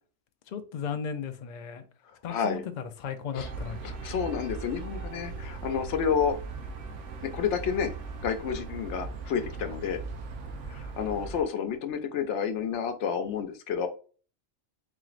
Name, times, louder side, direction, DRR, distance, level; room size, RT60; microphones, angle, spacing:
voice 1, 0.5-1.8 2.2-2.6 3.0-3.8, left 6 dB, 60° left, 0.5 m, -35 dB
voice 2, 2.3-2.6 3.3-3.5 3.8-6.4 7.2-7.9 8.2-10.0 10.7-13.9, left 7 dB, 75° left, 0.9 m, -30 dB
sound 1, 3.4-11.4, right 4 dB, 85° right, 1.0 m, -39 dB
4.0 x 3.0 x 2.4 m
omnidirectional pair, 1.2 m